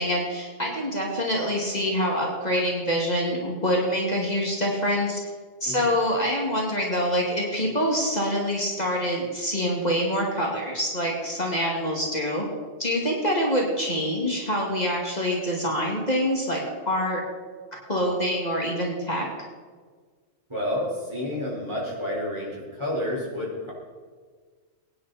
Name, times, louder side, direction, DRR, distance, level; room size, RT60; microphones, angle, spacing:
voice 1, 0.0-5.2 5.6-12.4 12.8-17.2 17.9-19.3, equal, 35° left, -2 dB, 2.4 m, -25 dB
voice 2, 20.5-23.7, left 1 dB, 25° right, -4 dB, 4.8 m, -30 dB
22.5 x 9.8 x 4.2 m, 1.5 s
omnidirectional pair, 1.2 m